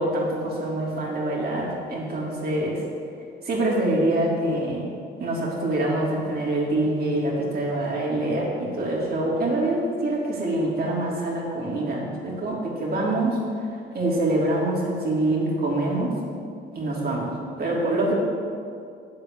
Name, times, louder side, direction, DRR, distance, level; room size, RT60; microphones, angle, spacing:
voice 1, 0.0-2.8 3.4-4.9 5.2-13.4 13.9-16.1 16.7-17.3 17.6-18.2, right 1 dB, 50° right, -4 dB, 3.3 m, -25 dB
8.8 x 7.8 x 7.8 m, 2.4 s
cardioid pair, 90°, 20 cm